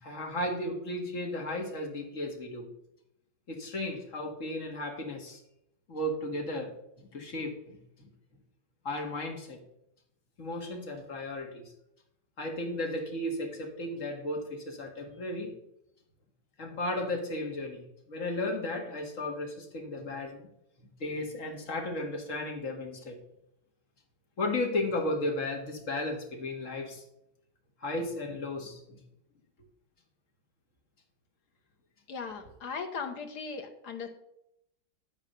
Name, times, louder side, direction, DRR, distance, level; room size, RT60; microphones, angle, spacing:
voice 1, 0.0-2.7 3.5-5.4 5.9-6.7 7.0-8.1 8.8-9.6 10.4-11.6 12.4-15.5 16.6-20.5 21.0-23.2 24.4-27.0 27.8-29.0, left 1 dB, 40° left, 1 dB, 2.1 m, -34 dB
voice 2, 32.1-34.1, left 5 dB, 60° left, 6 dB, 1.6 m, -38 dB
11.5 x 4.9 x 6.6 m, 0.80 s
omnidirectional pair, 2.1 m